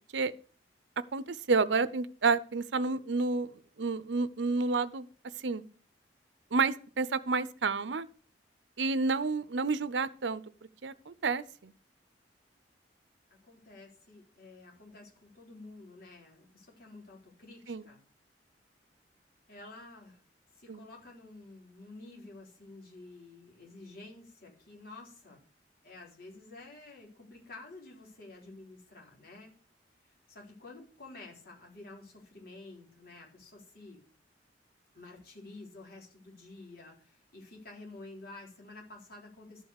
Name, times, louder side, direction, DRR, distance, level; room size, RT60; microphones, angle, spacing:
voice 1, 1.1-3.5 3.8-5.1 5.4-5.6 6.5-8.1 8.8-10.4 10.8-11.7 17.7-17.9 20.7-20.9, right 4 dB, 85° right, 0.7 m, -30 dB
voice 2, 13.5-18.0 19.5-20.2 20.6-25.4 25.8-29.5 30.0-34.0 34.9-39.6, left 2 dB, 55° left, 4.0 m, -50 dB
12.0 x 5.5 x 6.6 m
head